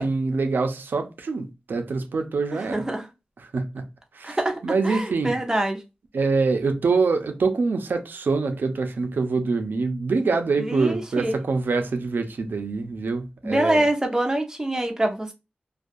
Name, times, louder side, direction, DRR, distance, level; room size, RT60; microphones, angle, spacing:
voice 1, 0.0-2.8 3.5-3.8 4.2-4.4 4.6-5.4 6.1-13.8, right 4 dB, 85° right, 0.5 m, -25 dB
voice 2, 2.5-3.1 4.2-5.8 10.6-11.4 13.4-15.3, right 1 dB, 15° right, 0.6 m, -25 dB
2.3 x 2.3 x 2.5 m
wide cardioid pair, 65°, 3 cm